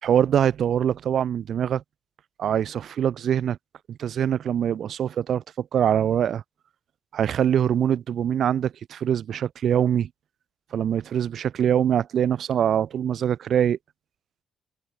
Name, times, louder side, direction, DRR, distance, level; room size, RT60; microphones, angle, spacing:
voice 1, 0.0-1.8 2.4-3.6 3.9-6.4 7.1-10.1 10.7-13.8, right 9 dB, 55° right, 3.1 m, -23 dB
figure-of-eight pair, 45°, 0 cm